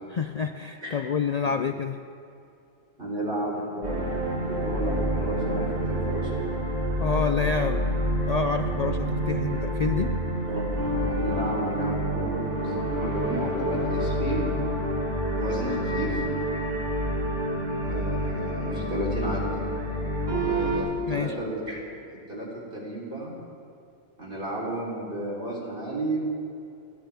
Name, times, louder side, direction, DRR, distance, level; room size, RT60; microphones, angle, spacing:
voice 1, 0.1-2.0 7.0-7.8 8.3-10.1 21.1-21.3, left 6 dB, 80° left, 7 dB, 0.3 m, -28 dB
voice 2, 3.0-6.4 10.5-10.7 11.0-14.5 15.3-16.2 17.8-19.5 20.2-21.8 22.3-23.4 24.2-26.2, right 1 dB, 40° right, -5 dB, 4.2 m, -33 dB
sound 1, 3.8-20.8, right 1 dB, 90° right, 4.5 m, -28 dB
30.0 x 13.0 x 3.6 m, 2.7 s
omnidirectional pair, 1.4 m